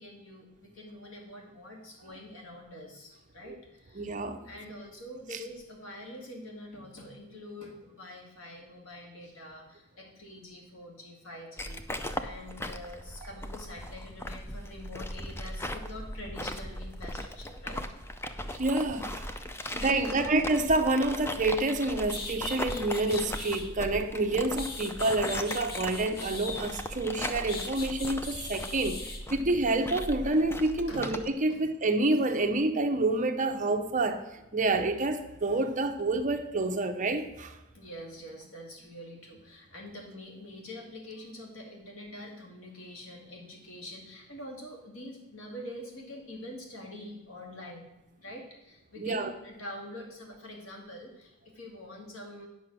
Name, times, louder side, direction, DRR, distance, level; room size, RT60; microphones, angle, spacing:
voice 1, 0.0-4.1 4.4-17.9 19.5-20.3 30.9-31.1 31.5-31.6 37.7-47.9 48.2-52.5, left 1 dB, 80° left, 1 dB, 2.3 m, -45 dB
voice 2, 3.9-4.5 5.3-5.4 18.5-19.3 19.7-34.2 34.5-37.6 49.0-49.3, right 2 dB, 40° right, 7 dB, 0.8 m, -28 dB
sound 1, 11.6-31.3, left 1 dB, 10° left, 0.5 m, -38 dB
sound 2, 22.1-23.7 24.3-26.9 27.5-29.2, left 3 dB, 45° left, 1.2 m, -40 dB
9.4 x 6.0 x 6.2 m, 1.0 s
head